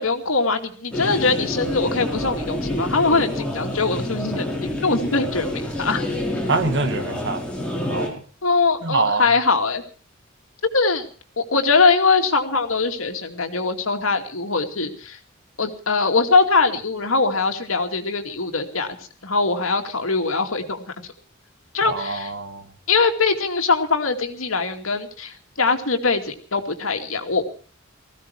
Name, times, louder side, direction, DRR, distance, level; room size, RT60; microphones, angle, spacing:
voice 1, 0.0-4.5 4.8-6.0 8.4-9.8 10.7-11.1 11.4-15.2 15.6-18.9 19.2-21.1 21.7-22.3 22.9-27.4, left 4 dB, 70° left, 2.5 m, -22 dB
sound 1, 0.9-8.1, left 1 dB, 5° left, 5.2 m, -28 dB
voice 2, 6.5-7.4 7.9-8.2 8.8-9.3 21.9-22.6, right 3 dB, 60° right, 2.0 m, -24 dB
19.5 x 15.5 x 4.8 m
head